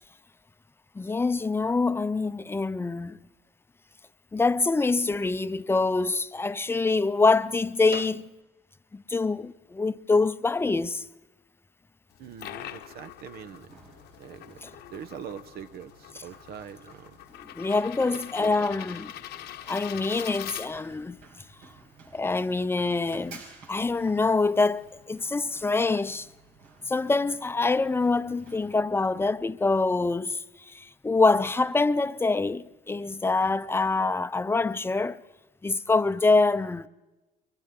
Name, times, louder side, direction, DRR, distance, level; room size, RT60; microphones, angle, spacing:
voice 1, 0.9-3.2 4.3-8.2 8.9-11.0 14.6-14.7 17.4-19.1 19.7-21.2 22.1-23.4 23.7-24.8 25.1-26.3 26.9-35.2 35.6-36.9, left 3 dB, 15° left, 0.6 m, -25 dB
sound 1, 12.1-21.1, left 12 dB, 80° left, 1.1 m, -43 dB
voice 2, 12.2-13.7 14.2-14.6 14.9-17.2 18.0-18.8, right 8 dB, 70° right, 1.0 m, -43 dB
Run, 13.5-29.5, right 4 dB, 90° right, 5.3 m, -54 dB
29.0 x 23.5 x 3.8 m
cardioid pair, 110°, 17 cm